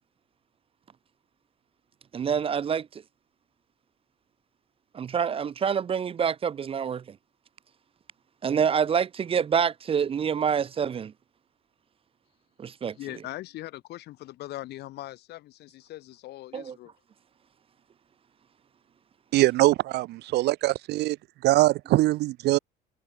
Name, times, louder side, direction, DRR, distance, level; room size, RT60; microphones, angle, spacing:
voice 1, 2.1-3.0 4.9-7.0 8.4-11.1 12.6-13.0 16.5-16.8, right 7 dB, 35° right, 0.6 m, -26 dB
voice 2, 13.0-16.9, left 16 dB, 75° left, 2.3 m, -40 dB
voice 3, 19.3-21.2 21.4-22.6, right 17 dB, 80° right, 1.1 m, -22 dB
cardioid pair, 110°, 17 cm